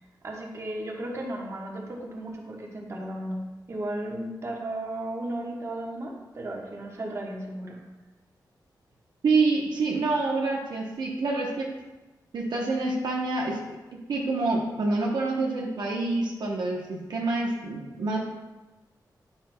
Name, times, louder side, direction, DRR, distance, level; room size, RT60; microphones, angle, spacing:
voice 1, 0.2-3.4 3.7-7.8, right 1 dB, 40° right, -2 dB, 1.2 m, -35 dB
voice 2, 9.2-11.7 12.3-13.8 14.1-18.2, right 3 dB, 75° right, -2 dB, 0.9 m, -27 dB
8.6 x 5.8 x 2.2 m, 1.1 s
wide cardioid pair, 135°, 7 cm